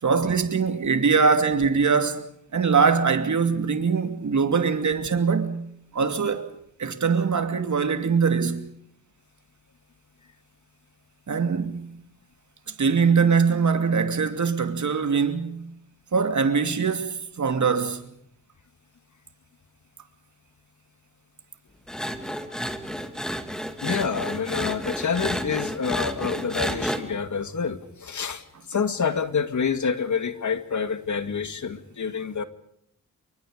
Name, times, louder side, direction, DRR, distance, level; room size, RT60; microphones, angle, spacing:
voice 1, 0.0-5.6 5.9-6.5 6.8-8.7 11.3-11.9 12.8-15.7 16.1-18.0, right 5 dB, 55° right, 2.7 m, -22 dB
sound 1, 21.9-27.0, equal, ahead, 2.7 m, -30 dB
voice 2, 23.8-32.4, left 6 dB, 60° left, 2.2 m, -28 dB
28.0 x 24.0 x 5.2 m
cardioid pair, 65°, 34 cm